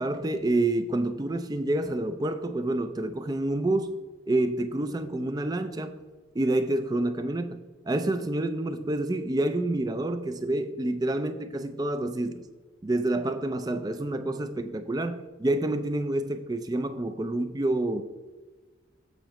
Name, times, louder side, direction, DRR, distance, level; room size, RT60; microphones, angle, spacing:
voice 1, 0.0-3.9 4.3-6.0 6.3-12.5 12.8-18.0, right 1 dB, 20° right, 9 dB, 0.4 m, -28 dB
7.4 x 6.8 x 3.0 m, 1.3 s
head